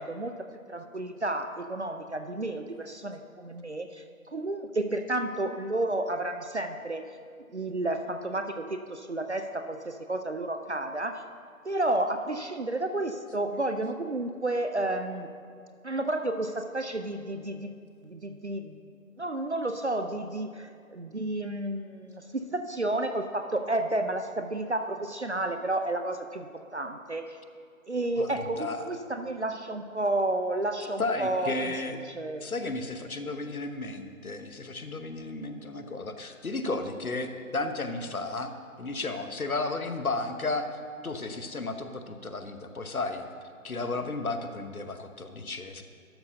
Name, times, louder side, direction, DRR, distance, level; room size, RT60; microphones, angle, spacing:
voice 1, 0.0-7.2 7.5-11.2 11.6-15.3 15.8-17.7 18.0-18.8 19.2-27.4 27.9-31.8 32.0-32.5, right 2 dB, 55° right, 7 dB, 0.5 m, -31 dB
voice 2, 28.2-28.9 31.0-32.0 32.4-38.5 38.8-40.7 41.0-43.3 43.6-45.8, left 3 dB, 75° left, 8 dB, 1.0 m, -33 dB
12.0 x 4.5 x 6.7 m, 2.3 s
figure-of-eight pair, 160°, 43 cm